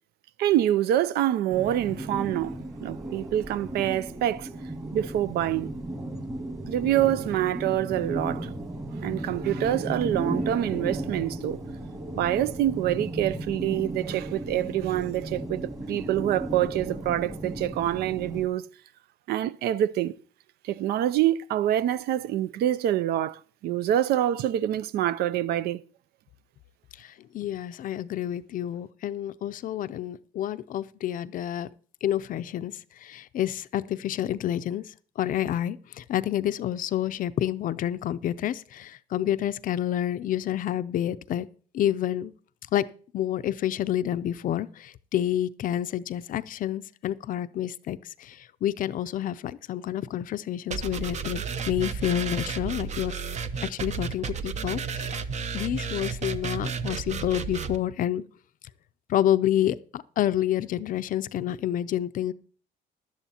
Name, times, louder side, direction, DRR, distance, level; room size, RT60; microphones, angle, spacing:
voice 1, 0.4-4.5 4.9-5.7 6.7-8.5 9.0-11.6 12.2-18.6 19.3-20.2 20.6-25.8, right 12 dB, 70° right, 0.4 m, -26 dB
sound 1, 1.5-18.5, right 1 dB, 20° right, 1.9 m, -35 dB
voice 2, 27.0-31.7 32.0-41.5 41.7-42.3 42.7-42.9 43.1-53.2 53.6-55.2 55.5-58.2 59.1-62.3, left 11 dB, 55° left, 0.5 m, -29 dB
sound 2, 50.7-57.8, right 5 dB, 45° right, 0.7 m, -32 dB
16.0 x 11.5 x 2.8 m
cardioid pair, 110°, 17 cm